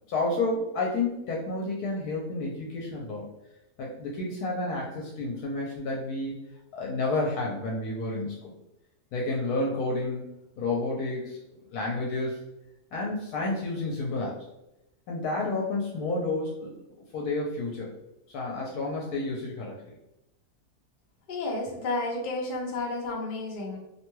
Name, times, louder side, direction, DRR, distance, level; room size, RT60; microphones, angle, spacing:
voice 1, 0.1-3.3 3.8-6.3 6.7-8.5 9.1-10.3 10.6-11.4 11.7-12.4 12.9-14.3 15.1-16.7 17.1-17.9 18.3-20.0, left 2 dB, 80° left, -2 dB, 1.1 m, -30 dB
voice 2, 21.3-23.8, left 2 dB, 60° left, -1 dB, 0.5 m, -31 dB
2.8 x 2.2 x 3.0 m, 0.90 s
omnidirectional pair, 1.7 m